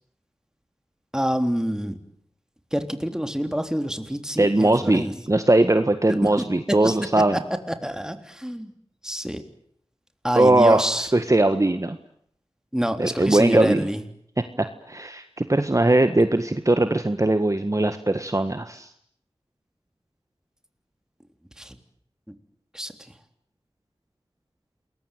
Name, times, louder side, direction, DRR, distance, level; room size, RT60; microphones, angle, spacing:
voice 1, 1.1-2.0 2.7-5.1 6.1-6.3 6.8-7.0 7.3-7.4 7.7-8.7 9.0-9.4 10.2-11.1 12.7-14.0 21.6-21.8 22.7-22.9, equal, 5° right, 8 dB, 3.5 m, -27 dB
voice 2, 4.4-7.4 10.4-12.0 13.0-13.9 14.6-18.9, right 2 dB, 35° right, 9 dB, 1.7 m, -20 dB
28.5 x 22.0 x 9.3 m, 0.68 s
wide cardioid pair, 60°, 10 cm